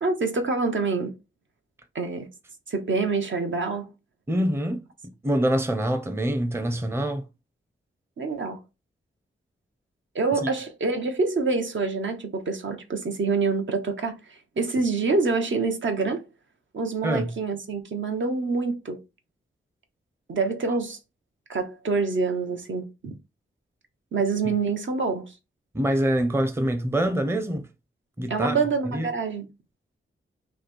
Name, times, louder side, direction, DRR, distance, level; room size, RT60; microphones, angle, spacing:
voice 1, 0.0-1.1 1.9-2.3 2.7-3.9 8.2-8.6 10.1-16.2 16.7-19.0 20.3-21.0 21.5-23.1 24.1-25.3 28.3-29.5, right 4 dB, 65° right, 0.8 m, -26 dB
voice 2, 4.3-4.8 5.2-7.3 10.4-10.5 17.0-17.3 24.4-24.5 25.7-27.7 28.2-28.6 28.9-29.1, right 1 dB, 10° right, 0.6 m, -25 dB
3.1 x 2.7 x 4.2 m
wide cardioid pair, 100°, 21 cm